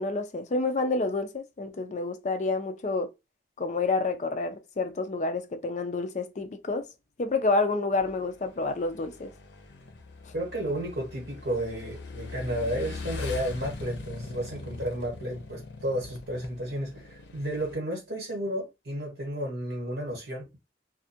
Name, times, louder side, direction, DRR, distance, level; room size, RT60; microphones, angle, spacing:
voice 1, 0.0-3.1 3.6-6.8 7.2-9.3, left 3 dB, 40° left, 0.4 m, -29 dB
Motorcycle / Engine, 8.0-17.7, left 3 dB, 85° left, 0.6 m, -41 dB
voice 2, 10.3-20.5, right 1 dB, 70° right, 1.1 m, -32 dB
2.4 x 2.1 x 2.6 m
head